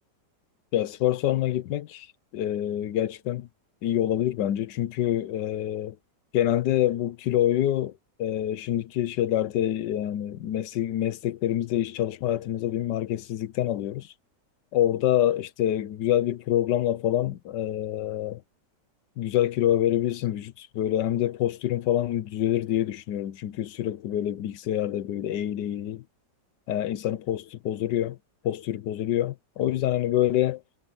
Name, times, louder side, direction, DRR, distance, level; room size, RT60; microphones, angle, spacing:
voice 1, 0.7-2.1 2.3-3.5 3.8-6.0 6.3-7.9 8.2-14.1 14.7-18.4 19.2-26.0 26.7-28.2 28.4-30.6, left 12 dB, 80° left, 1.4 m, -26 dB
omnidirectional pair, 1.9 m